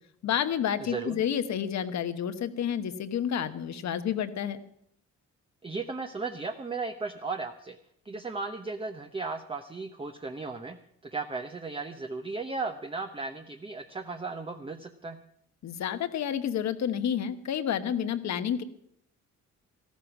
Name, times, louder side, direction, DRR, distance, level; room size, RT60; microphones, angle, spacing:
voice 1, 0.2-4.6 15.6-18.6, left 9 dB, 65° left, 11 dB, 1.1 m, -30 dB
voice 2, 0.9-1.2 5.6-7.8 8.0-10.8 11.0-15.2, right 3 dB, 20° right, 6 dB, 0.8 m, -35 dB
13.5 x 12.5 x 6.0 m, 0.70 s
cardioid pair, 90°, 30 cm